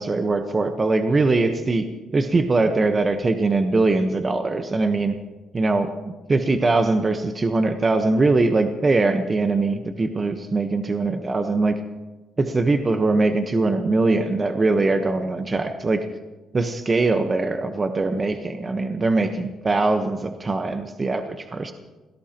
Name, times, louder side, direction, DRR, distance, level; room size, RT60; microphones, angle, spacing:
voice 1, 0.0-1.9 2.1-5.1 5.5-5.9 6.3-11.8 12.4-16.0 16.5-21.7, right 3 dB, 30° right, 7 dB, 1.1 m, -21 dB
27.0 x 17.0 x 3.0 m, 1.2 s
cardioid pair, 90°, 0 cm